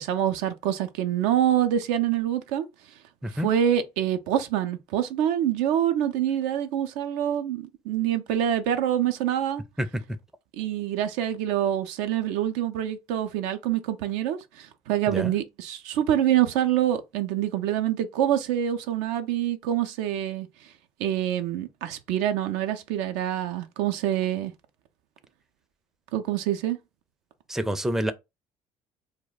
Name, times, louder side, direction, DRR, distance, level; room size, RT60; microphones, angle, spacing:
voice 1, 0.0-2.7 3.3-9.6 10.6-20.7 21.0-24.5 26.1-26.8, right 11 dB, 75° right, 0.4 m, -26 dB
voice 2, 27.5-28.1, equal, 5° right, 0.4 m, -27 dB
2.2 x 2.1 x 3.8 m
hypercardioid pair, 65°, 12 cm